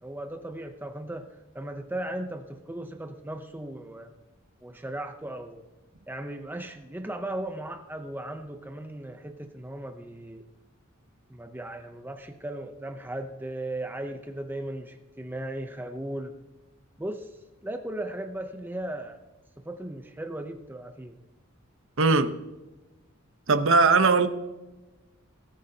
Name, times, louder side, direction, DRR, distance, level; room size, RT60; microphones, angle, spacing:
voice 1, 0.0-4.1 4.6-5.6 6.1-10.4 11.3-16.3 17.0-19.2 19.6-21.1, right 1 dB, 10° right, 0.6 m, -37 dB
voice 2, 22.0-22.3 23.5-24.3, right 4 dB, 65° right, 0.8 m, -19 dB
18.5 x 9.3 x 2.8 m
head